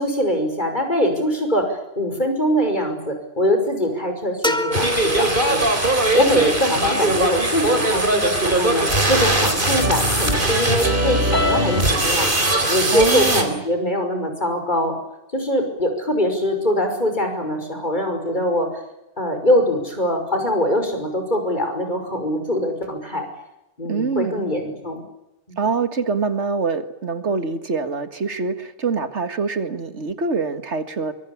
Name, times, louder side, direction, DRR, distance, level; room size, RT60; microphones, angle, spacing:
voice 1, 0.0-5.7 6.1-12.3 12.7-15.0 15.3-18.8 19.2-23.3 23.8-25.0 25.5-25.6, equal, 40° left, 5 dB, 6.0 m, -23 dB
sound 1, 4.4-6.2, left 1 dB, 5° left, 2.0 m, -26 dB
sound 2, 4.7-13.4, right 1 dB, 45° right, 4.3 m, -20 dB
voice 2, 12.9-13.6 23.9-24.4 25.6-31.1, right 4 dB, 75° right, 10 dB, 2.2 m, -25 dB
24.0 x 23.5 x 8.6 m, 0.91 s
omnidirectional pair, 1.2 m